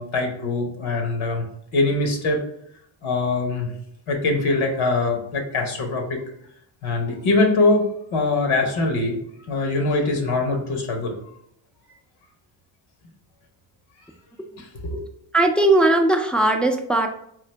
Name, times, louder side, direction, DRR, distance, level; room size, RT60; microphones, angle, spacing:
voice 1, 0.0-1.4 1.7-2.4 3.0-3.7 4.1-6.2 6.8-9.2 9.5-11.2 14.6-15.0, left 3 dB, 80° left, 2 dB, 1.1 m, -23 dB
voice 2, 15.3-17.1, right 2 dB, ahead, 3 dB, 0.3 m, -18 dB
3.8 x 2.5 x 3.3 m, 0.72 s
supercardioid pair, 65°, 48 cm